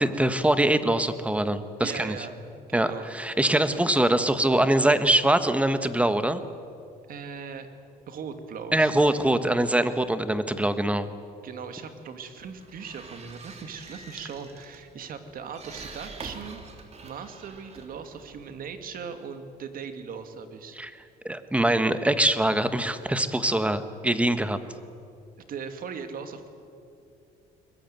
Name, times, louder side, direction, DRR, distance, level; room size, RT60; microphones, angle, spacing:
voice 1, 0.0-2.2 2.7-6.4 8.7-11.1 20.7-20.9 21.2-24.6, right 1 dB, 5° right, 11 dB, 1.4 m, -23 dB
voice 2, 1.8-3.1 3.5-3.8 7.1-7.7 8.1-9.1 11.4-16.6 17.0-20.8 25.5-26.5, right 6 dB, 55° right, 8 dB, 2.6 m, -39 dB
sound 1, 12.4-18.9, right 3 dB, 40° right, 3.5 m, -46 dB
22.5 x 20.5 x 9.2 m, 2.6 s
cardioid pair, 110°, 17 cm